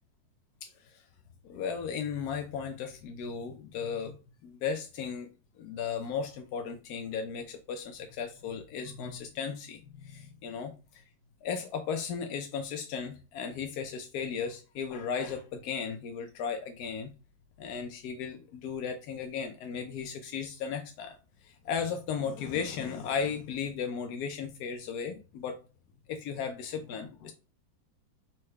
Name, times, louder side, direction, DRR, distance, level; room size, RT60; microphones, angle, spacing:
voice 1, 0.6-1.0 1.4-4.2 4.4-5.3 5.6-10.7 11.4-17.1 17.6-21.2 21.4-25.6 26.1-27.3, left 6 dB, 75° left, 5 dB, 0.9 m, -35 dB
4.3 x 2.2 x 4.7 m, 0.33 s
omnidirectional pair, 2.0 m